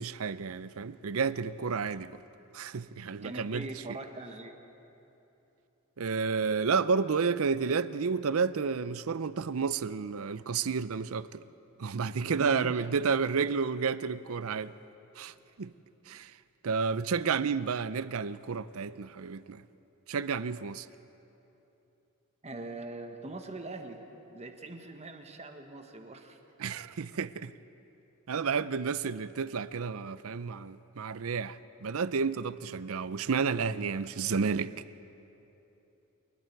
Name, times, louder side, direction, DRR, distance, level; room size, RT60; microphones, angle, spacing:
voice 1, 0.0-2.1 2.5-3.7 6.0-11.4 11.8-14.7 15.2-15.7 16.1-16.3 16.6-19.6 20.1-20.9 26.6-27.5 28.3-34.9, right 5 dB, 70° right, 0.6 m, -31 dB
voice 2, 3.2-4.6 12.4-12.8 22.4-24.0 24.3-26.4, right 2 dB, 30° right, 1.5 m, -42 dB
29.5 x 19.5 x 4.7 m
head